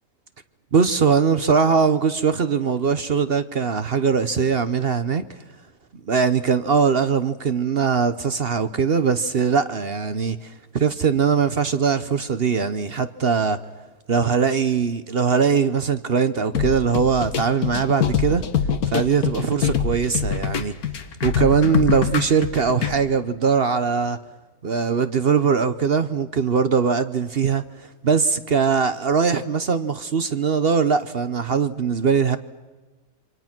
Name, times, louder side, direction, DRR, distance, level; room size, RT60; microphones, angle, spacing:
voice 1, 0.7-5.4 6.1-13.6 14.1-18.5 18.9-20.7 21.2-24.2 24.6-32.4, right 6 dB, 45° right, 1.0 m, -21 dB
sound 1, 16.5-22.9, left 7 dB, 85° left, 1.8 m, -24 dB
27.0 x 25.0 x 6.1 m
omnidirectional pair, 1.5 m